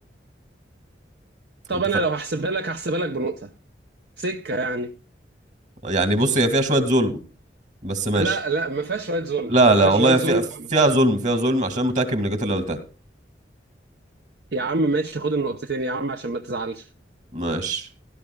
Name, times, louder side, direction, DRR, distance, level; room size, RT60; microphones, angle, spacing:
voice 1, 1.7-3.5 4.2-4.9 8.1-10.6 14.5-16.9, right 2 dB, 60° right, 0.7 m, -26 dB
voice 2, 5.8-7.2 7.8-8.4 9.5-10.4 10.7-12.8 17.3-17.9, right 2 dB, 40° right, 2.1 m, -20 dB
17.5 x 11.5 x 2.2 m
head